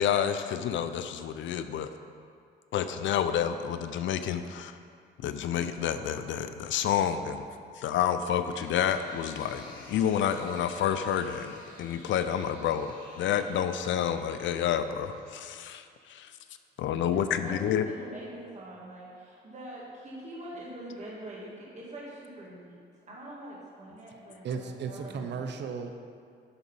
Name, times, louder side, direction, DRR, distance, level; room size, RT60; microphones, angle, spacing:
voice 1, 0.0-1.9 2.7-4.7 5.2-7.5 7.8-16.3 16.8-17.9, left 9 dB, 75° left, 10 dB, 0.6 m, -29 dB
sound 1, 8.1-16.0, left 2 dB, 45° left, 2.0 m, -52 dB
voice 2, 17.1-22.8 23.1-25.5, right 1 dB, 35° right, -5 dB, 2.1 m, -44 dB
voice 3, 24.4-25.9, right 5 dB, 60° right, 6 dB, 0.8 m, -35 dB
11.5 x 4.0 x 5.5 m, 2.2 s
cardioid pair, 90°, 20 cm